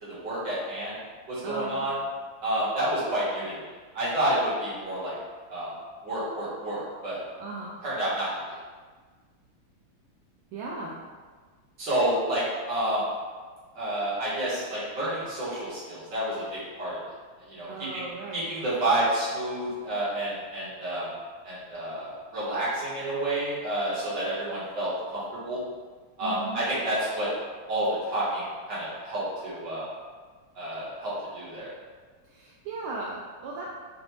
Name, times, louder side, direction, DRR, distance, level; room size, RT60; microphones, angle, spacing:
voice 1, 0.0-1.0 1.3-1.9 2.4-3.5 3.9-5.1 5.5-5.7 6.0-7.2 7.8-8.3 11.8-13.1 13.7-17.0 17.5-18.1 18.3-21.1 21.4-25.6 26.2-27.3 27.7-29.8 30.6-31.7, right 1 dB, 55° right, -10 dB, 2.1 m, -29 dB
voice 2, 1.4-1.8 7.4-7.8 10.5-11.0 17.7-18.4 26.2-26.6 32.3-33.7, right 3 dB, 80° right, -4 dB, 1.4 m, -37 dB
5.2 x 2.5 x 3.1 m, 1.5 s
omnidirectional pair, 2.4 m